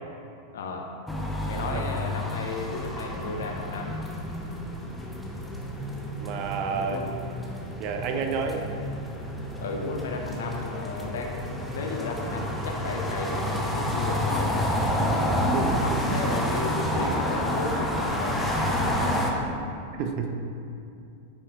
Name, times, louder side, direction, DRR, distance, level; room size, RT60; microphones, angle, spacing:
voice 1, 0.5-0.9 1.4-4.0 6.7-7.1 9.6-14.6 15.2-19.4 20.3-20.4, left 3 dB, 60° left, 2 dB, 0.7 m, -34 dB
sound 1, 1.1-19.3, equal, 5° left, 0.7 m, -29 dB
voice 2, 6.2-7.0 7.8-8.6 15.5-15.8 20.0-20.4, right 5 dB, 45° right, 4 dB, 0.6 m, -29 dB
9.6 x 5.4 x 2.4 m, 2.5 s
figure-of-eight pair, 90°, 0 cm